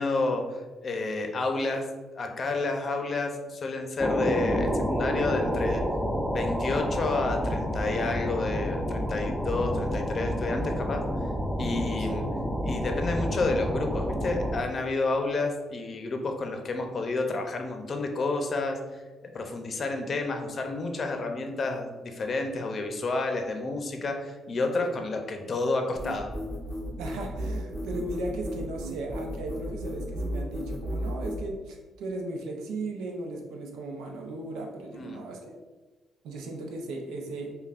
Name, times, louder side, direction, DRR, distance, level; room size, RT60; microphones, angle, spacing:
voice 1, 0.0-1.9 2.1-5.8 6.3-11.0 11.6-12.3 12.6-18.8 19.2-26.3 34.9-35.2, left 3 dB, 50° left, 4 dB, 0.6 m, -30 dB
sound 1, 4.0-14.6, equal, ahead, 0.4 m, -29 dB
voice 2, 12.0-12.3 27.0-35.6 36.2-37.6, right 2 dB, 90° right, 1 dB, 0.6 m, -36 dB
sound 2, 26.0-31.4, equal, 25° right, 1.3 m, -34 dB
5.3 x 2.3 x 2.4 m, 1.3 s
cardioid pair, 75°, 0 cm